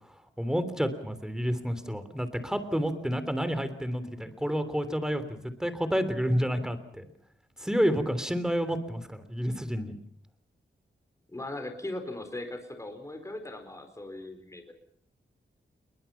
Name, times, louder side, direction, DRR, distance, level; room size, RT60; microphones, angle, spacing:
voice 1, 0.4-7.0 7.6-9.9, equal, 5° right, 11 dB, 3.2 m, -29 dB
voice 2, 11.3-14.7, left 2 dB, 15° left, 6 dB, 4.4 m, -39 dB
29.0 x 23.0 x 5.8 m, 0.65 s
wide cardioid pair, 160°, 19 cm